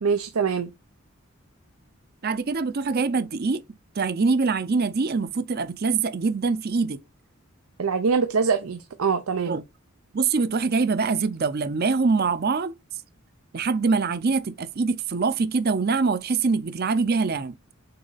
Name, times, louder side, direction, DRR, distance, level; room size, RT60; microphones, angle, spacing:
voice 1, 0.0-0.7 7.8-9.6, right 5 dB, 90° right, 0.6 m, -24 dB
voice 2, 2.2-3.6 4.0-7.0 9.4-9.6 10.1-12.7 13.5-17.6, right 4 dB, 45° right, 0.6 m, -24 dB
6.6 x 3.9 x 4.1 m
head